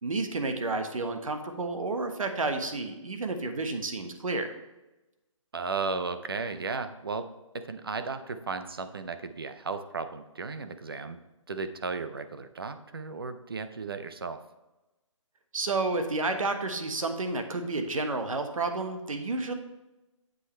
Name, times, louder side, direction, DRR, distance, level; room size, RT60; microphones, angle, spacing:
voice 1, 0.0-4.5 15.5-19.5, right 3 dB, 80° right, 6 dB, 1.3 m, -30 dB
voice 2, 5.5-7.3 7.5-11.2 11.5-14.4, right 4 dB, 45° right, 10 dB, 0.6 m, -35 dB
8.7 x 7.9 x 3.2 m, 1.0 s
hypercardioid pair, 180°, 17 cm